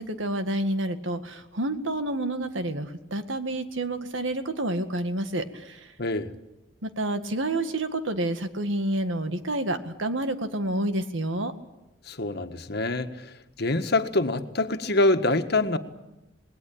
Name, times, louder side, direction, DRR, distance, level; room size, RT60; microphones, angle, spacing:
voice 1, 0.0-5.9 6.8-11.5, right 1 dB, 80° right, 9 dB, 1.9 m, -29 dB
voice 2, 6.0-6.3 12.1-13.3 13.6-15.8, left 2 dB, 55° left, 7 dB, 1.7 m, -25 dB
27.5 x 20.5 x 8.7 m, 0.99 s
head